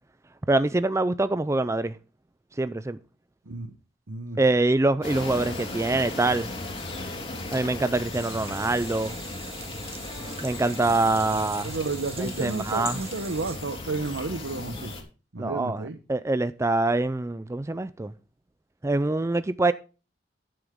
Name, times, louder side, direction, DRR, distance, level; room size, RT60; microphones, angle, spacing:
voice 1, 0.5-2.0 2.6-3.0 4.4-6.5 7.5-9.1 10.4-11.7 12.2-13.0 15.4-15.8 16.1-18.1 18.8-19.7, right 2 dB, 15° right, 0.4 m, -24 dB
voice 2, 4.1-4.4 11.3-11.4 11.6-14.9 15.3-16.0, right 3 dB, 80° right, 1.0 m, -32 dB
sound 1, 5.0-15.0, left 2 dB, 30° left, 3.0 m, -36 dB
sound 2, 8.1-13.6, right 6 dB, 35° right, 1.9 m, -44 dB
10.0 x 10.0 x 3.6 m
head